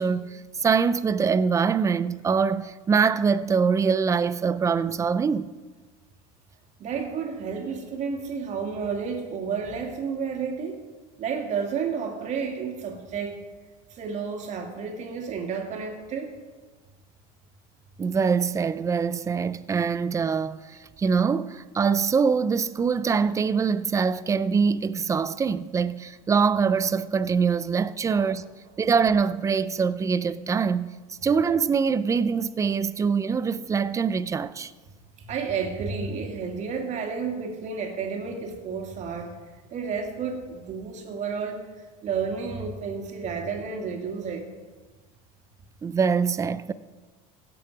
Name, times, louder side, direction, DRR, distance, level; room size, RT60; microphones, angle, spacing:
voice 1, 0.0-5.5 18.0-28.4 28.8-34.7 45.8-46.7, right 5 dB, 15° right, 0.4 m, -24 dB
voice 2, 6.8-10.8 11.2-13.4 13.9-16.4 28.1-28.2 35.2-39.3 39.7-41.7 42.0-44.5, right 5 dB, 40° right, 2.1 m, -31 dB
16.5 x 6.9 x 5.0 m
supercardioid pair, 125°, 18 cm